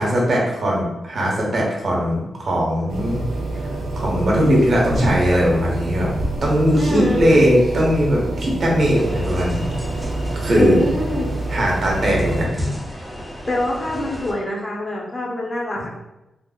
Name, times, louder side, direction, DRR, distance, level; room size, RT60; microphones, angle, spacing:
voice 1, 0.0-3.2 4.0-6.1 6.4-9.6 10.3-10.8 11.5-12.8 15.7-15.8, equal, 55° right, -3 dB, 1.1 m, -19 dB
sound 1, 2.9-12.5, right 2 dB, 85° right, 0.6 m, -27 dB
voice 2, 6.7-7.4 10.5-11.3 13.5-15.9, left 1 dB, 30° left, -2 dB, 1.0 m, -24 dB
sound 2, 9.0-14.3, equal, ahead, 0.5 m, -34 dB
3.8 x 2.4 x 2.4 m, 0.95 s
cardioid pair, 70°, 0 cm